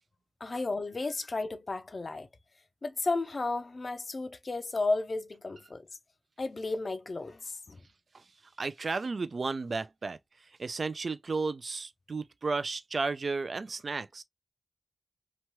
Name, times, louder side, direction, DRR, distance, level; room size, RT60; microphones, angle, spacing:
voice 1, 0.4-2.3 2.8-5.9 6.4-7.8, left 3 dB, 60° left, 0.5 m, -33 dB
voice 2, 8.6-10.2 10.6-14.2, right 4 dB, 70° right, 0.3 m, -33 dB
3.0 x 2.2 x 2.9 m
cardioid pair, 50°, 0 cm